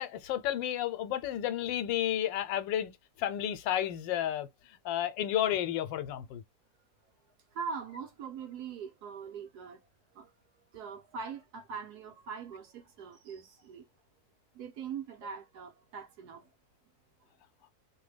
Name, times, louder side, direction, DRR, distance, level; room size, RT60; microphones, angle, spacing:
voice 1, 0.0-2.9 3.2-6.4, left 11 dB, 85° left, 1.3 m, -32 dB
voice 2, 7.5-9.8 10.1-10.3 10.7-13.9 14.5-16.5, right 6 dB, 65° right, 1.3 m, -42 dB
3.1 x 2.2 x 3.2 m
omnidirectional pair, 1.9 m